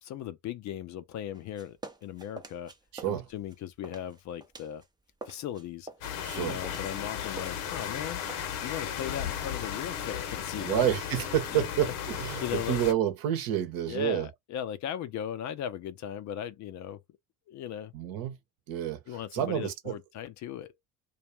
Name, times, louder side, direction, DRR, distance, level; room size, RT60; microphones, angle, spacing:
voice 1, 0.0-2.7 3.0-4.8 5.3-5.9 6.4-8.2 8.6-10.9 11.5-11.9 12.4-12.9 13.9-17.0 17.5-17.9 19.1-20.7, left 10 dB, 45° left, 0.5 m, -37 dB
sound 1, 1.3-4.9 5.1-9.6, right 3 dB, 10° right, 0.6 m, -48 dB
voice 2, 2.9-3.3 6.2-6.6 10.6-14.3 17.9-18.4 18.7-20.0, right 11 dB, 55° right, 0.9 m, -29 dB
sound 2, 6.0-12.9, left 9 dB, 65° left, 0.9 m, -35 dB
2.4 x 2.3 x 2.9 m
hypercardioid pair, 65°, 42 cm